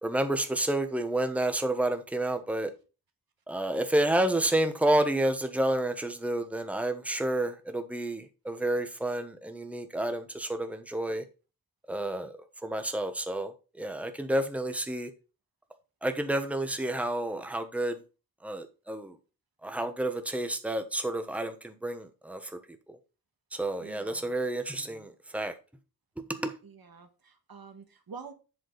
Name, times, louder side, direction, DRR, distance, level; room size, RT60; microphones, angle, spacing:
voice 1, 0.0-2.7 3.5-11.2 11.9-12.4 12.6-15.1 16.0-18.0 18.4-19.2 19.6-22.6 22.9-23.0 23.5-25.5 26.2-26.6, right 1 dB, 5° right, 1.0 m, -30 dB
voice 2, 23.8-24.3 26.6-28.3, right 5 dB, 80° right, 1.5 m, -47 dB
8.0 x 6.2 x 3.9 m
wide cardioid pair, 85°, 36 cm